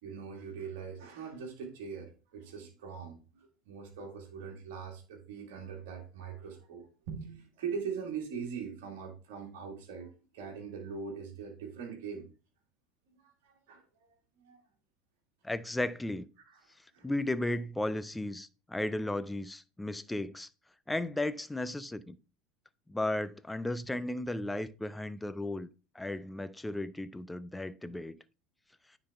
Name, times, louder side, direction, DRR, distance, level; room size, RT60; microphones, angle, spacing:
voice 1, 0.0-12.3 13.2-13.9 14.4-14.6 16.5-16.6 16.9-17.1, right 6 dB, 65° right, 1.8 m, -42 dB
voice 2, 15.4-16.2 17.0-20.5 20.9-22.2 22.9-25.7 25.9-28.2, left 1 dB, 10° left, 0.5 m, -35 dB
9.5 x 4.0 x 3.5 m
figure-of-eight pair, 75°, 0 cm